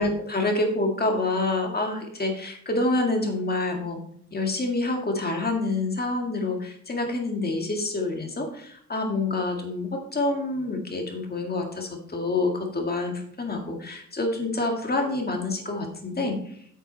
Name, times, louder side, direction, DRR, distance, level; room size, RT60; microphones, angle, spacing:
voice 1, 0.0-4.0 4.3-16.6, left 2 dB, 35° left, 2 dB, 2.0 m, -27 dB
8.3 x 7.4 x 4.1 m, 0.63 s
wide cardioid pair, 135°, 29 cm